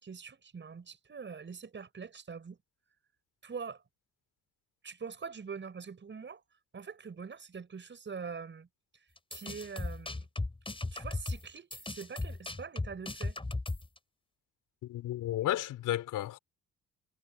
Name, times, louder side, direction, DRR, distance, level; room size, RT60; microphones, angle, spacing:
voice 1, 0.0-2.6 3.4-3.8 4.8-6.4 6.7-8.7 9.3-10.3 10.9-13.4, right 5 dB, 40° right, 5.8 m, -44 dB
sound 1, 9.2-14.0, left 2 dB, 15° left, 5.2 m, -36 dB
voice 2, 14.8-16.4, left 13 dB, 85° left, 4.5 m, -33 dB
cardioid pair, 90°, 30 cm